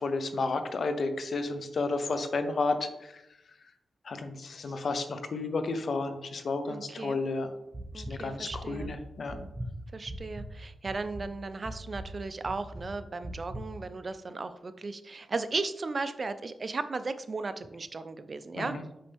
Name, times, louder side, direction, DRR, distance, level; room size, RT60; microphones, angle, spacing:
voice 1, 0.0-3.2 4.0-7.5 7.9-9.5 18.6-18.8, left 3 dB, 65° left, 8 dB, 0.7 m, -32 dB
voice 2, 6.7-7.2 7.9-8.9 9.9-18.8, right 3 dB, 45° right, 11 dB, 0.5 m, -36 dB
sound 1, 7.7-8.1 8.5-8.9 9.3-10.5 10.9-11.3 11.6-12.1 12.4-12.9 13.2-13.6, right 1 dB, 30° right, 1.0 m, -39 dB
5.5 x 5.3 x 3.5 m, 0.88 s
cardioid pair, 65°, 0 cm